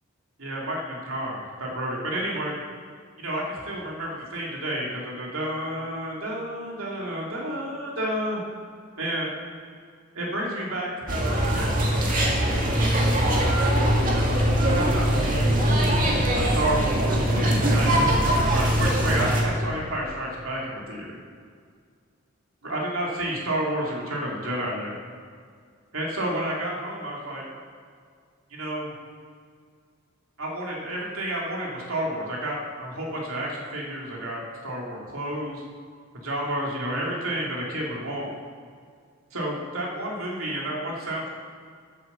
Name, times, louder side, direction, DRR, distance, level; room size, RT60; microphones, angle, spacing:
voice 1, 0.4-0.8 1.1-2.6 3.2-8.4 9.0-9.3 10.1-15.6 16.5-21.2 22.6-25.0 25.9-27.4 28.5-28.9 30.4-35.6 36.2-38.3 39.3-41.3, right 1 dB, 80° right, -3 dB, 2.7 m, -31 dB
sound 1, 11.1-19.4, equal, 40° right, 2.0 m, -22 dB
9.2 x 8.2 x 7.0 m, 2.1 s
head